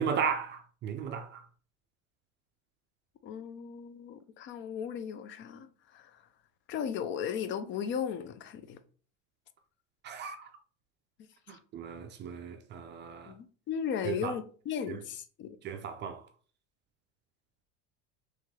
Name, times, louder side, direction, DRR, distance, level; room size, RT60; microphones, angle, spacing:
voice 1, 0.0-1.4 10.0-10.5 11.5-13.3 14.0-14.3 14.9-15.0 15.6-16.2, right 6 dB, 30° right, 0.4 m, -35 dB
voice 2, 3.2-6.1 6.7-8.8 11.5-11.6 13.3-15.6, left 8 dB, 35° left, 0.4 m, -36 dB
3.1 x 3.0 x 3.6 m
supercardioid pair, 130°, 35 cm